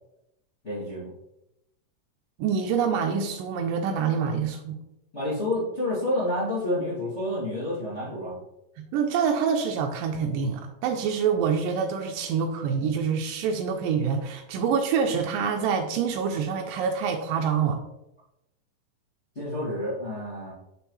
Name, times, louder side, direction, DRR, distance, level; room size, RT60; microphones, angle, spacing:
voice 1, 0.6-1.1 5.1-8.4 19.4-20.5, left 1 dB, 25° left, -9 dB, 1.9 m, -29 dB
voice 2, 2.4-4.8 8.8-17.8, right 6 dB, 85° right, 4 dB, 2.3 m, -26 dB
6.8 x 6.2 x 3.1 m, 0.86 s
omnidirectional pair, 3.9 m